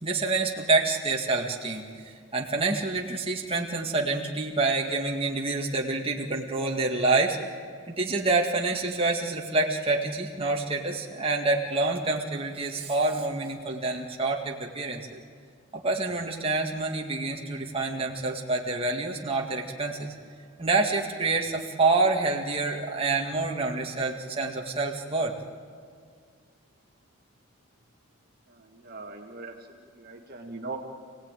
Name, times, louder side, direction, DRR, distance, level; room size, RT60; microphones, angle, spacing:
voice 1, 0.0-1.8 2.3-7.4 7.9-15.2 15.7-20.1 20.6-25.3, right 3 dB, 25° right, 0 dB, 1.9 m, -27 dB
voice 2, 28.5-30.8, right 3 dB, 45° right, 1 dB, 1.8 m, -41 dB
28.0 x 18.0 x 9.1 m, 2.1 s
head